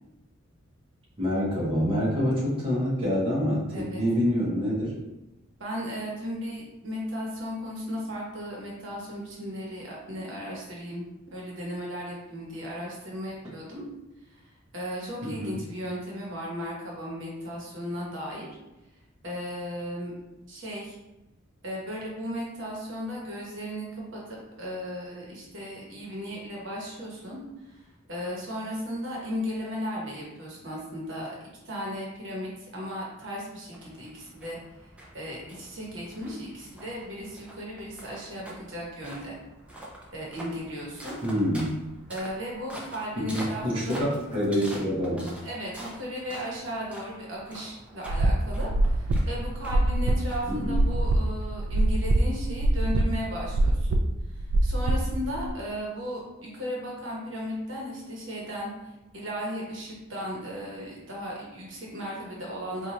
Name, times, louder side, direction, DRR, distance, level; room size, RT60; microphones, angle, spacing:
voice 1, 1.2-4.9 15.2-15.6 41.2-41.8 43.2-45.3 50.5-50.8, equal, 25° right, -7 dB, 0.9 m, -26 dB
voice 2, 3.7-4.0 5.6-11.0 11.3-13.8 14.7-18.5 19.2-20.1 20.5-21.0 21.6-27.4 27.7-27.8 28.1-31.3 31.6-34.6 35.1-39.4 40.1-41.2 42.1-44.0 45.4-54.0 54.6-58.7 59.1-62.9, equal, 65° right, -4 dB, 1.0 m, -35 dB
sound 1, 33.7-51.4, right 1 dB, 5° right, 0.5 m, -46 dB
sound 2, 48.1-55.5, right 1 dB, 85° right, 0.3 m, -24 dB
4.2 x 2.4 x 2.9 m, 1.0 s
head